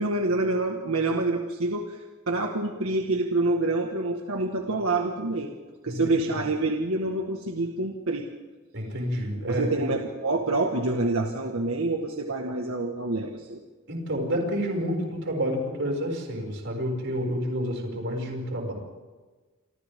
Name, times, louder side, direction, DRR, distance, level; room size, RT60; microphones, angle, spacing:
voice 1, 0.0-5.6 5.8-8.3 9.5-13.6, right 2 dB, 90° right, 2 dB, 1.7 m, -27 dB
voice 2, 5.9-6.5 8.7-9.9 13.9-18.7, equal, 60° right, 1 dB, 6.4 m, -29 dB
28.0 x 25.5 x 3.7 m, 1.3 s
head